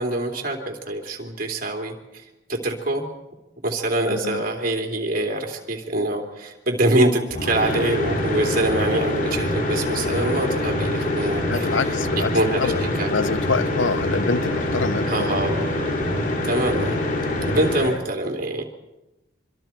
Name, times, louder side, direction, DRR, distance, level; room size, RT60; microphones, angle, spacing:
voice 1, 0.0-2.2 2.5-3.1 3.6-11.9 12.3-13.1 15.1-15.7 16.4-17.0 17.5-18.6, right 1 dB, 50° right, 2 dB, 3.2 m, -24 dB
voice 2, 4.1-4.4 11.5-12.3 12.6-12.8 13.1-15.1, left 4 dB, 75° left, 14 dB, 0.8 m, -26 dB
sound 1, 7.3-18.0, left 1 dB, 45° left, 2.8 m, -25 dB
25.5 x 25.5 x 4.6 m, 1.0 s
head